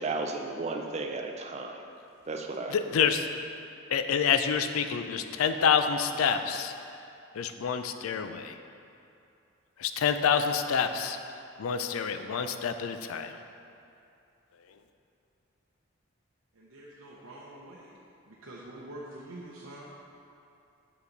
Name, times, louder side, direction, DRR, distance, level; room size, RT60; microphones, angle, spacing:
voice 1, 0.0-1.8 2.3-2.7, right 3 dB, 30° right, 4 dB, 0.4 m, -34 dB
voice 2, 2.7-3.3 3.9-6.7 7.3-8.6 9.8-11.2 11.6-13.4 14.7-14.8, left 7 dB, 85° left, 8 dB, 0.4 m, -27 dB
voice 3, 16.5-17.9 18.3-19.9, right 1 dB, 75° right, -5 dB, 0.7 m, -46 dB
6.4 x 5.6 x 3.9 m, 2.7 s
head